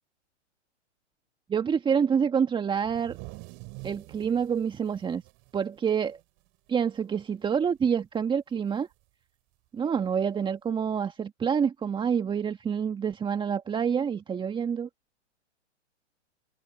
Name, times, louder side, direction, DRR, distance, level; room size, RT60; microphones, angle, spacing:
voice 1, 1.5-3.2 3.8-5.2 5.5-6.2 6.7-8.9 9.7-14.9, right 7 dB, 15° right, 1.7 m, -27 dB
sound 1, 2.8-6.5 6.8-7.0 7.3-7.8 8.9-9.0 10.1-10.2, right 30 dB, 35° right, 5.8 m, -46 dB
hypercardioid pair, 120°, 36 cm